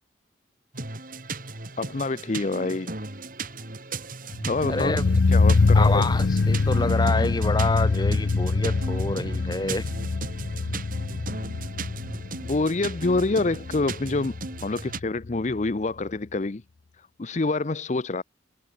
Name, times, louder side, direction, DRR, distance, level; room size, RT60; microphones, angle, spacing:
sound 1, 0.7-15.0, right 3 dB, 50° right, 3.7 m, -36 dB
voice 1, 1.8-2.9 4.5-5.0 5.3-6.1 12.4-14.4 14.6-16.6 17.2-18.2, left 3 dB, 40° left, 0.6 m, -26 dB
sound 2, 4.3-15.3 15.6-15.7, left 3 dB, 85° left, 0.6 m, -24 dB
voice 2, 4.7-5.0 5.7-9.9, left 2 dB, 25° left, 1.8 m, -28 dB
head